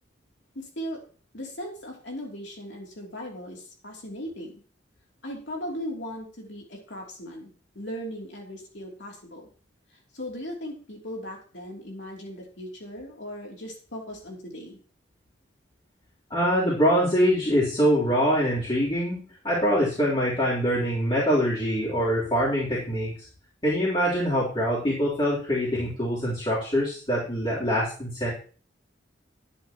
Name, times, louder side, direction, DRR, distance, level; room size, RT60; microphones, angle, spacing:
voice 1, 0.5-1.0 1.3-4.6 5.2-7.5 7.7-9.5 10.1-14.8, equal, 70° left, 0 dB, 3.0 m, -38 dB
voice 2, 16.3-23.1 23.6-28.3, equal, 25° left, -9 dB, 3.6 m, -24 dB
12.0 x 10.5 x 3.0 m, 0.40 s
head